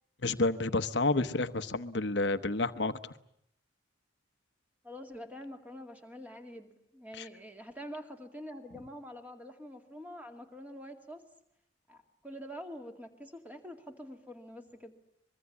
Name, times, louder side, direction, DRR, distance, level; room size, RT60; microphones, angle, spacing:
voice 1, 0.2-3.1 7.1-7.3, left 2 dB, 60° left, 12 dB, 1.0 m, -30 dB
voice 2, 4.8-11.2 11.9-14.9, equal, 10° right, 5 dB, 2.2 m, -46 dB
24.5 x 22.5 x 8.5 m, 0.73 s
head